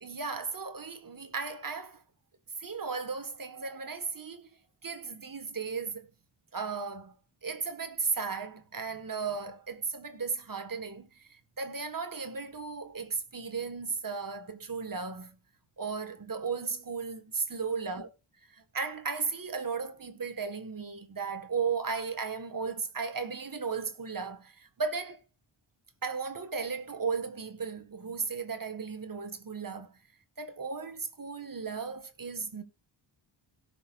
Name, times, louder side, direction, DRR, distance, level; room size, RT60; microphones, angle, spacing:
voice 1, 0.0-2.0 2.6-4.5 4.8-6.1 6.5-7.2 7.4-15.3 15.8-18.1 18.5-25.2 26.0-29.9 30.4-32.6, right 5 dB, 40° right, 1.8 m, -35 dB
17.0 x 6.5 x 2.6 m
wide cardioid pair, 80°, 49 cm